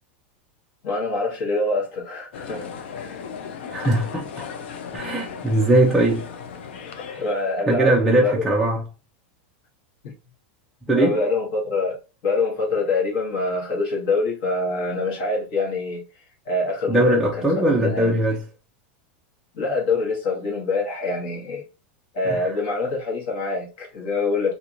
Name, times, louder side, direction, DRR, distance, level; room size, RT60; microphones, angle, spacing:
voice 1, 0.8-3.2 7.1-8.5 10.0-10.1 10.9-12.0 12.2-16.0 16.4-18.2 19.5-21.6 22.1-24.5, left 3 dB, 50° left, 1.4 m, -25 dB
sound 1, 2.3-7.5, left 6 dB, 70° left, 0.5 m, -36 dB
voice 2, 3.7-4.3 4.9-6.3 7.1-7.2 7.7-8.8 10.9-11.2 16.9-18.4 22.3-22.5, right 2 dB, ahead, 0.3 m, -20 dB
2.9 x 2.6 x 2.5 m
supercardioid pair, 180°, 6 cm